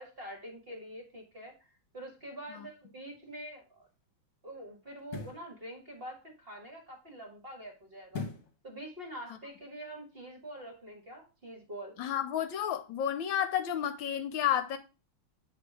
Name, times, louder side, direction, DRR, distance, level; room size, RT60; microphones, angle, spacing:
voice 1, 0.0-3.9 4.4-8.3 8.6-12.0, right 1 dB, 30° right, 1.5 m, -45 dB
sound 1, 3.1-3.3 5.0-5.5 8.1-8.6 9.0-9.1, left 4 dB, 55° left, 1.5 m, -39 dB
voice 2, 12.0-14.8, left 10 dB, 75° left, 1.3 m, -31 dB
7.8 x 3.3 x 4.7 m
omnidirectional pair, 2.2 m